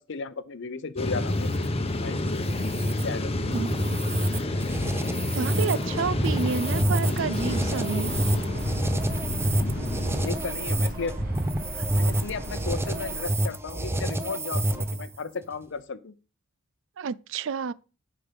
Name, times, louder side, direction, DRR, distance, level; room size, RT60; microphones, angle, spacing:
voice 1, 0.0-1.5 2.0-2.4 2.8-3.3 10.2-11.2 11.9-16.1, left 4 dB, 60° left, 0.7 m, -35 dB
sound 1, 1.0-10.3, left 1 dB, 30° left, 0.9 m, -29 dB
sound 2, 1.3-15.2, right 1 dB, 10° right, 0.7 m, -29 dB
voice 2, 5.3-8.2 11.7-11.9 17.0-17.7, right 5 dB, 65° right, 0.4 m, -30 dB
sound 3, 8.0-13.2, equal, 45° right, 2.3 m, -38 dB
8.9 x 5.1 x 5.1 m
head